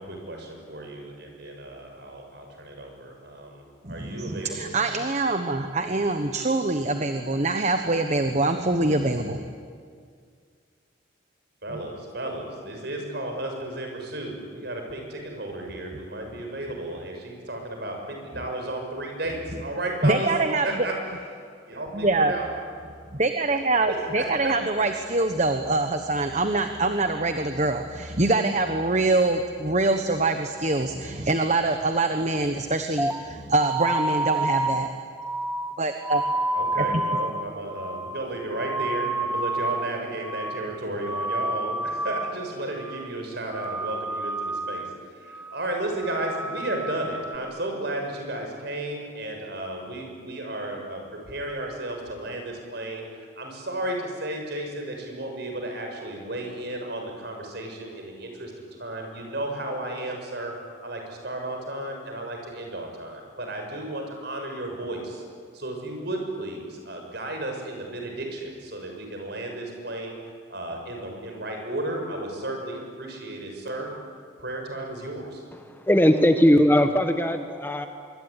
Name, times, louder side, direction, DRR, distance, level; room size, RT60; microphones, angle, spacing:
voice 1, 0.0-4.9 11.6-18.0 18.2-20.3 20.6-21.3 21.7-22.5 23.5-24.9 36.5-60.5 60.8-65.2 65.5-70.2 70.5-73.9 74.4-75.4, right 1 dB, 55° right, 2 dB, 6.6 m, -33 dB
voice 2, 3.8-9.4 20.0-20.7 21.9-22.3 23.2-34.9 35.8-36.2 36.8-37.0, right 2 dB, 35° right, 7 dB, 1.3 m, -24 dB
sound 1, 33.0-40.0 40.2-40.7 41.0-42.5 42.7-43.2 43.5-45.0 45.3-45.7 46.0-47.4, right 2 dB, 10° right, 1.0 m, -29 dB
voice 3, 75.7-77.9, equal, 10° left, 7 dB, 1.2 m, -19 dB
25.0 x 24.5 x 9.9 m, 2.1 s
head